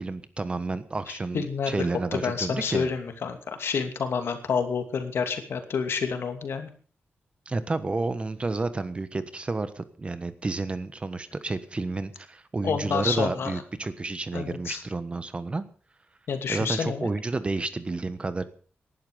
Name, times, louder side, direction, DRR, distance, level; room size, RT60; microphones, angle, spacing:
voice 1, 0.0-2.9 7.5-15.6 16.5-18.4, right 3 dB, 30° right, 12 dB, 1.3 m, -30 dB
voice 2, 1.1-1.9 2.1-6.7 12.6-13.6 14.3-14.8 16.3-17.1, left 6 dB, 80° left, 7 dB, 2.7 m, -29 dB
19.0 x 11.5 x 5.3 m, 0.41 s
wide cardioid pair, 135°, 4 cm